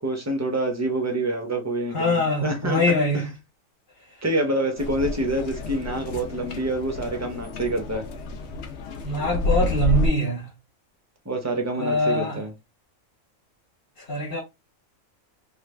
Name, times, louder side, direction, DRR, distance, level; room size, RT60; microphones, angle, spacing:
voice 1, 0.0-3.3 4.2-8.1 11.3-12.5, right 1 dB, 25° right, 0.3 m, -27 dB
voice 2, 1.9-3.2 9.0-10.4 11.8-12.4 14.1-14.4, left 1 dB, 45° left, 1.1 m, -23 dB
sound 1, 4.8-10.1, left 1 dB, 65° left, 0.8 m, -29 dB
3.1 x 2.3 x 3.1 m
omnidirectional pair, 1.4 m